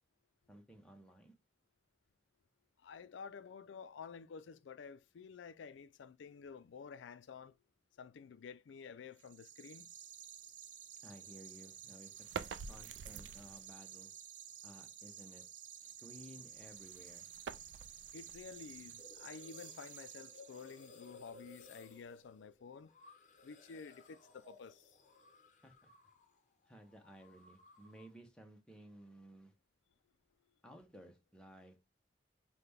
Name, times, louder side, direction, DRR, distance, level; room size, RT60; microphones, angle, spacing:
voice 1, 0.5-1.3 11.0-12.3 12.7-14.1 14.6-15.5 15.8-17.3 25.6-25.9 26.7-29.5 30.6-31.8, right 1 dB, 5° left, 0.7 m, -56 dB
voice 2, 2.8-7.6 7.9-9.9 18.1-22.9 23.4-24.9, left 5 dB, 90° left, 0.4 m, -51 dB
sound 1, 9.1-21.0, right 9 dB, 45° right, 0.8 m, -53 dB
sound 2, 12.1-13.8 16.5-19.4, right 6 dB, 75° right, 0.3 m, -48 dB
sound 3, 19.0-26.4 26.6-28.2, left 3 dB, 40° left, 0.7 m, -60 dB
5.7 x 2.2 x 3.4 m
head